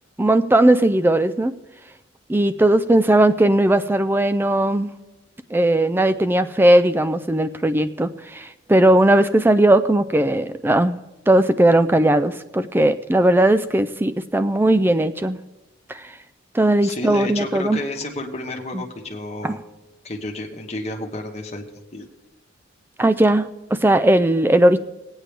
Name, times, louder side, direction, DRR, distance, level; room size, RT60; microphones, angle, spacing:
voice 1, 0.2-1.5 2.3-4.9 5.5-11.0 11.3-15.4 15.9-16.1 16.5-17.8 18.7-18.8 19.4-19.6 23.0-24.8, right 1 dB, 10° right, 12 dB, 0.3 m, -18 dB
voice 2, 16.8-19.6 20.0-22.1, left 2 dB, 30° left, 1 dB, 1.2 m, -31 dB
18.0 x 9.1 x 3.4 m, 1.1 s
head